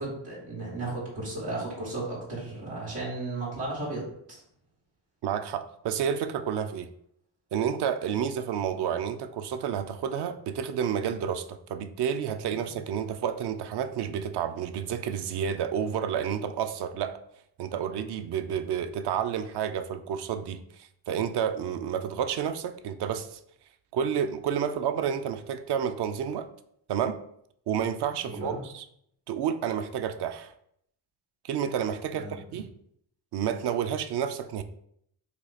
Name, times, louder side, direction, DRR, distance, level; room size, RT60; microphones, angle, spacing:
voice 1, 0.0-4.0 4.3-4.4 12.7-12.8 28.2-28.6 32.1-32.6, right 2 dB, 90° right, -6 dB, 1.3 m, -35 dB
voice 2, 5.2-6.9 7.5-17.2 17.6-23.4 23.9-26.5 26.9-27.2 27.7-28.8 29.3-30.5 31.4-32.7 33.3-34.6, right 8 dB, 55° right, 10 dB, 0.5 m, -30 dB
2.8 x 2.5 x 3.9 m, 0.71 s
supercardioid pair, 45°, 49 cm